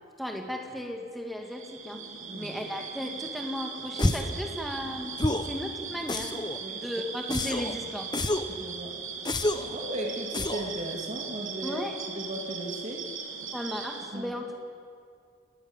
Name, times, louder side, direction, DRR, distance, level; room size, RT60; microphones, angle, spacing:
voice 1, 0.2-2.0 2.3-5.1 5.4-6.4 6.7-8.1 11.6-12.0 13.5-14.6, equal, ahead, 2 dB, 2.2 m, -35 dB
sound 1, 1.4-14.1, right 6 dB, 85° right, 3.2 m, -39 dB
sound 2, 4.0-4.4 5.2-5.6 6.1-6.6 7.3-7.7 8.1-8.6 9.3-9.7 10.3-10.7, left 2 dB, 20° left, 0.9 m, -28 dB
voice 2, 8.5-9.0 9.7-11.8 12.1-13.1 14.1-14.3, right 1 dB, 35° right, 1 dB, 3.0 m, -36 dB
28.5 x 19.5 x 7.4 m, 2.2 s
head